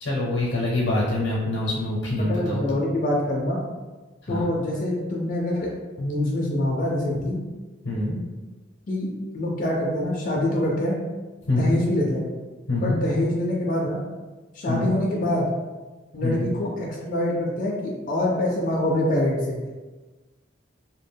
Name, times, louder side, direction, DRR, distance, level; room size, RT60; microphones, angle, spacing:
voice 1, 0.0-2.8 4.2-4.4 7.8-8.2 11.5-11.8 12.7-13.0 14.7-14.9 16.2-16.5, left 2 dB, 85° left, -6 dB, 0.6 m, -25 dB
voice 2, 2.2-3.6 4.3-5.7 6.0-7.4 8.9-11.0 11.6-12.3 12.8-14.0 14.5-15.5 16.1-19.6, left 1 dB, 45° left, -3 dB, 0.4 m, -25 dB
2.2 x 2.1 x 3.3 m, 1.2 s
head